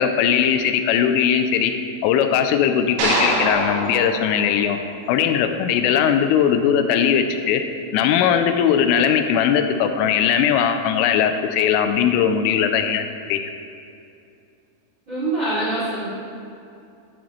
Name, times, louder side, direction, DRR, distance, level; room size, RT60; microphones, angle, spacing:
voice 1, 0.0-1.7 2.0-4.8 5.1-7.6 7.9-13.4, left 8 dB, 85° left, 7 dB, 3.1 m, -19 dB
sound 1, 3.0-5.3, right 1 dB, 75° right, 4.2 m, -25 dB
voice 2, 15.1-16.1, right 2 dB, 40° right, -11 dB, 1.7 m, -24 dB
13.5 x 6.3 x 3.1 m, 2.6 s
omnidirectional pair, 5.7 m